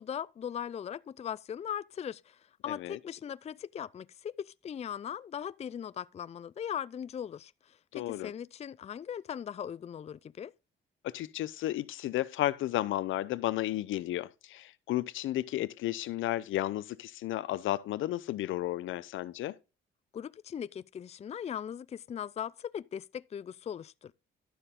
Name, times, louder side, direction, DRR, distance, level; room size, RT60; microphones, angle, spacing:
voice 1, 0.0-10.5 20.1-24.1, left 8 dB, 35° left, 0.4 m, -39 dB
voice 2, 2.7-3.0 7.9-8.3 11.0-19.5, left 14 dB, 80° left, 0.8 m, -33 dB
12.0 x 6.8 x 3.7 m
cardioid pair, 90°, 20 cm